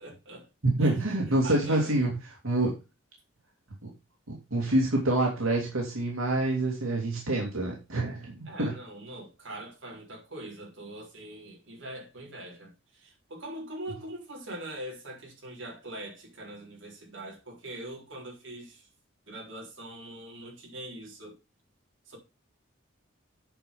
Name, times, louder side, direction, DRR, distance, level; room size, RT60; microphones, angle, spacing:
voice 1, 0.0-0.5 0.8-2.0 8.4-18.9 19.3-21.4 22.1-22.2, right 1 dB, 60° right, 3.9 m, -42 dB
voice 2, 0.6-2.2 2.4-2.7 3.8-3.9 4.3-8.7, right 2 dB, 90° right, 2.6 m, -27 dB
8.9 x 5.3 x 5.3 m
head